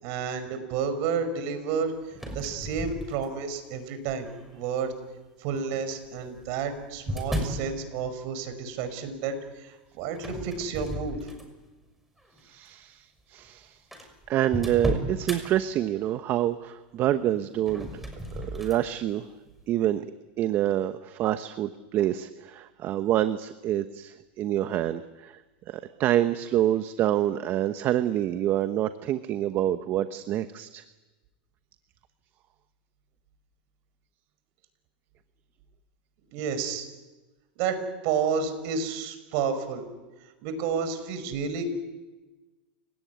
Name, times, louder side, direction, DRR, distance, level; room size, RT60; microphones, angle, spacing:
voice 1, 0.0-1.9 2.3-4.9 5.4-11.3 36.3-36.9 37.6-37.8 38.0-39.8 40.4-41.7, right 6 dB, 60° right, 10 dB, 5.4 m, -30 dB
sound 1, 2.1-3.6 4.2-4.7 5.8-7.7 10.1-11.7 12.2-12.4 13.2-13.3 13.5-13.6 13.9-15.4 17.5-18.8, equal, 5° right, 6.2 m, -34 dB
voice 2, 12.4-13.8 14.3-18.0 18.3-19.3 19.7-20.1 20.4-25.4 25.7-30.8, right 12 dB, 40° right, 10 dB, 1.1 m, -27 dB
29.5 x 18.0 x 9.5 m, 1.2 s
supercardioid pair, 120°, 5 cm